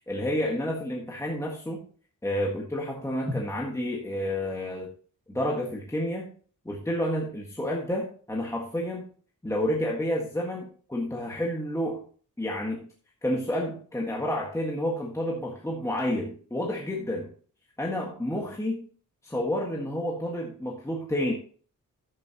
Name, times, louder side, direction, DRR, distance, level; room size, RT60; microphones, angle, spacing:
voice 1, 0.1-1.8 2.2-4.9 5.3-6.3 6.6-9.0 9.4-12.0 12.4-12.9 13.2-17.3 17.8-18.9 19.2-21.3, left 1 dB, 10° left, -2 dB, 1.6 m, -30 dB
11.0 x 8.8 x 2.9 m, 0.43 s
wide cardioid pair, 145°, 33 cm